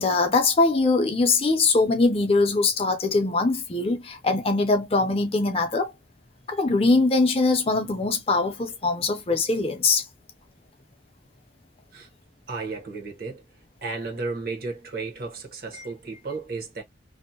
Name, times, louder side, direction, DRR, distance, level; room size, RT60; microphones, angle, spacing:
voice 1, 0.0-5.9 6.5-10.0 15.7-15.9, left 3 dB, 30° left, 0.5 m, -22 dB
voice 2, 12.5-13.4 13.8-16.8, right 3 dB, 50° right, 0.9 m, -33 dB
2.6 x 2.1 x 2.7 m
head